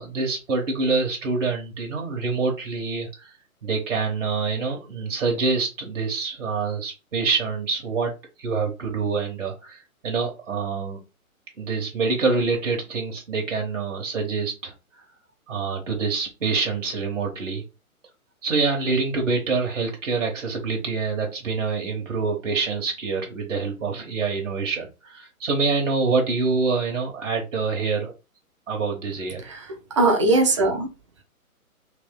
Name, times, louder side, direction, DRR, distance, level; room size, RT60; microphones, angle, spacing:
voice 1, 0.0-3.3 3.6-8.1 8.4-11.0 11.6-14.7 15.5-17.6 18.4-28.1 28.7-29.5, right 4 dB, 60° right, 1.1 m, -26 dB
voice 2, 29.4-30.9, right 2 dB, 20° right, 0.6 m, -21 dB
3.4 x 3.0 x 3.7 m
figure-of-eight pair, 130°, 43 cm